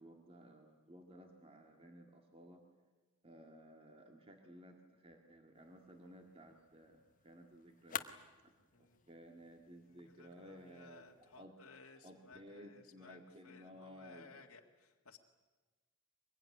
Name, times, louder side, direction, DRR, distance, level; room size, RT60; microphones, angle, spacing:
voice 1, 0.0-2.6 3.2-8.1 8.4-8.5 8.8-11.6 12.0-14.3, equal, 25° right, 3 dB, 2.0 m, -57 dB
sound 1, 5.5-11.5, left 8 dB, 40° left, 1.0 m, -52 dB
voice 2, 9.9-15.2, left 4 dB, 90° left, 0 dB, 1.9 m, -60 dB
24.0 x 21.5 x 9.9 m, 1.3 s
head